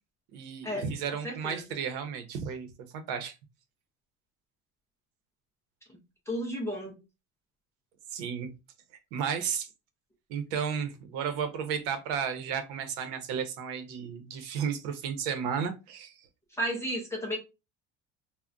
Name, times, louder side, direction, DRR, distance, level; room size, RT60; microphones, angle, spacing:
voice 1, 0.3-2.7 2.9-3.3 8.1-8.5 9.1-9.7 10.3-16.3, right 7 dB, 70° right, 0.8 m, -33 dB
voice 2, 1.2-1.6 5.9-6.0 6.3-7.0 16.5-17.4, equal, 10° left, 0.4 m, -33 dB
2.4 x 2.1 x 3.6 m
cardioid pair, 175°, 34 cm